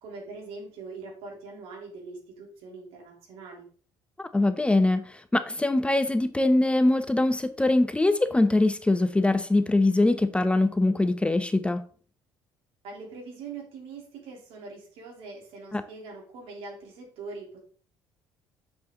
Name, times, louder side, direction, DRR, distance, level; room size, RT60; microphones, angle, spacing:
voice 1, 0.0-3.7 12.8-17.6, right 4 dB, 75° right, 0 dB, 3.4 m, -42 dB
voice 2, 4.2-11.8 15.7-15.8, left 2 dB, 10° left, 10 dB, 0.7 m, -23 dB
7.2 x 6.6 x 3.8 m, 0.43 s
supercardioid pair, 75°, 10 cm